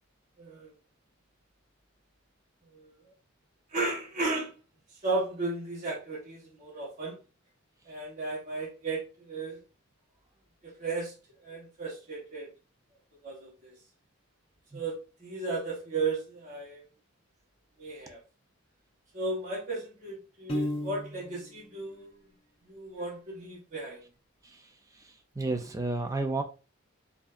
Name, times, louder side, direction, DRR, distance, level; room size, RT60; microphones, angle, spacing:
voice 1, 0.4-0.7 2.7-2.9 3.7-4.5 5.0-7.2 7.8-9.6 10.6-11.2 11.4-12.5 13.2-13.8 14.7-16.8 17.8-18.2 19.1-22.2 22.6-24.0, right 3 dB, 35° right, 1.2 m, -35 dB
Piano, 20.5-21.5, left 1 dB, 25° left, 0.8 m, -33 dB
voice 2, 25.4-26.4, right 3 dB, 15° right, 0.4 m, -30 dB
4.6 x 2.7 x 2.5 m
head